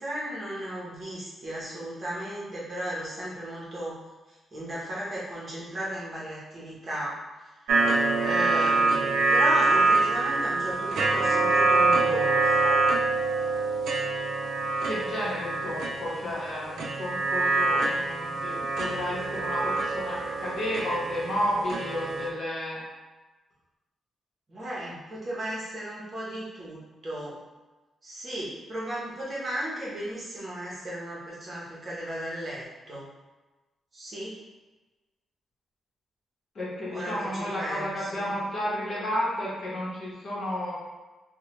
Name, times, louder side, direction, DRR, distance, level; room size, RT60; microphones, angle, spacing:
voice 1, 0.0-4.0 4.3-7.2 7.6-12.9 24.5-27.4 28.0-33.1 33.9-34.3 36.9-38.3, right 1 dB, 30° right, -7 dB, 0.8 m, -35 dB
sound 1, 7.7-22.3, right 3 dB, 85° right, 0.3 m, -25 dB
voice 2, 14.8-22.8 36.5-40.7, equal, 45° left, -7 dB, 0.9 m, -32 dB
3.0 x 2.2 x 3.0 m, 1.2 s
wide cardioid pair, 175°, 0 cm